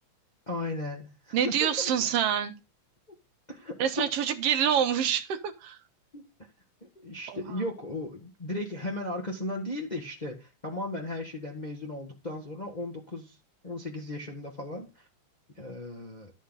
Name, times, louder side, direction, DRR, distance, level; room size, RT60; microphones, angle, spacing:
voice 1, 0.5-1.9 3.5-4.1 6.1-6.2 6.8-13.4 13.6-15.1 15.6-16.3, left 1 dB, 65° left, 0.4 m, -36 dB
voice 2, 1.3-2.5 3.8-5.8 7.3-7.4, right 9 dB, 65° right, 1.7 m, -26 dB
11.5 x 8.2 x 3.9 m
omnidirectional pair, 3.5 m